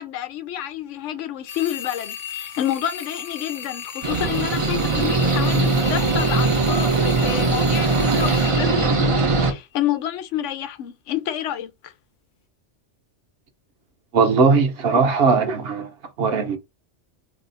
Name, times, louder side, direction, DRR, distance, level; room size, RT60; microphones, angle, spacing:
voice 1, 0.0-11.9, left 11 dB, 85° left, 0.9 m, -29 dB
sound 1, 1.5-9.6, left 8 dB, 50° left, 0.7 m, -36 dB
sound 2, 4.0-9.5, right 3 dB, 35° right, 0.5 m, -20 dB
voice 2, 14.1-15.9 16.2-16.6, right 4 dB, 60° right, 0.9 m, -18 dB
2.7 x 2.4 x 3.8 m
omnidirectional pair, 1.2 m